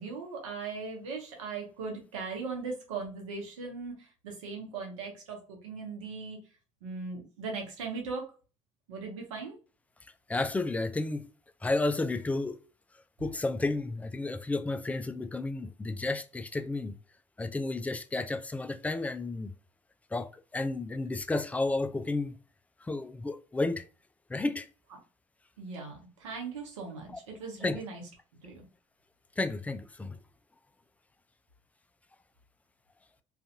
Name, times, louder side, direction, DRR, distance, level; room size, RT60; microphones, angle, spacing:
voice 1, 0.0-6.4 6.8-8.3 8.9-9.6 25.6-28.0 28.4-28.6, right 4 dB, 80° right, 0.9 m, -39 dB
voice 2, 10.3-11.3 11.6-12.6 13.2-17.0 17.4-19.5 20.1-22.4 22.8-23.8 24.3-24.7 27.6-27.8 29.4-30.2, left 2 dB, 10° left, 0.3 m, -32 dB
2.6 x 2.4 x 2.5 m
hypercardioid pair, 60°, 16 cm